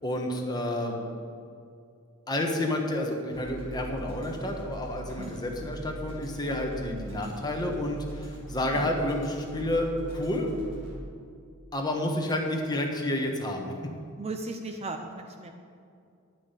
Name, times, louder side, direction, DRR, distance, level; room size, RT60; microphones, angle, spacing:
voice 1, 0.0-1.0 2.3-9.9 10.1-10.5 11.7-13.9, left 1 dB, 20° left, 1 dB, 1.3 m, -30 dB
sound 1, 3.3-11.0, right 2 dB, 60° right, 2.4 m, -41 dB
voice 2, 14.2-15.5, right 3 dB, 30° right, 5 dB, 0.6 m, -37 dB
10.5 x 6.1 x 9.0 m, 2.4 s
head